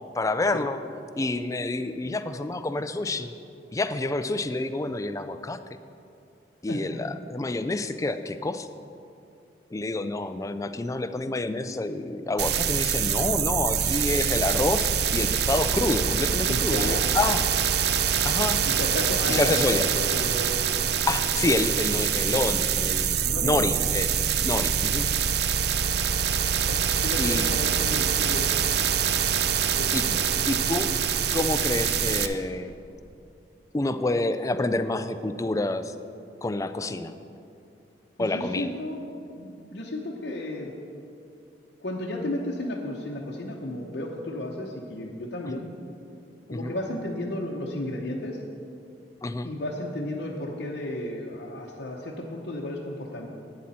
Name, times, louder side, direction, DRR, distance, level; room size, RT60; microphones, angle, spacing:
voice 1, 0.2-0.8 1.2-3.3 3.7-5.6 6.6-8.7 9.7-17.4 18.2-18.6 19.3-19.9 21.1-24.1 24.4-25.1 27.2-27.4 29.9-30.2 30.5-30.9 31.3-32.8 33.7-35.9 36.4-37.1 38.2-38.7 46.5-46.7 49.2-49.5, left 2 dB, 20° left, 10 dB, 0.4 m, -28 dB
sound 1, 12.4-32.3, right 8 dB, 65° right, 0.5 m, -25 dB
voice 2, 16.5-17.0 18.6-20.5 23.2-23.5 26.7-28.4 29.8-29.9 38.2-39.0 39.4-40.7 41.8-45.7 46.5-48.4 49.4-53.3, left 1 dB, 65° left, -3 dB, 0.9 m, -33 dB
11.5 x 8.6 x 4.3 m, 2.5 s
head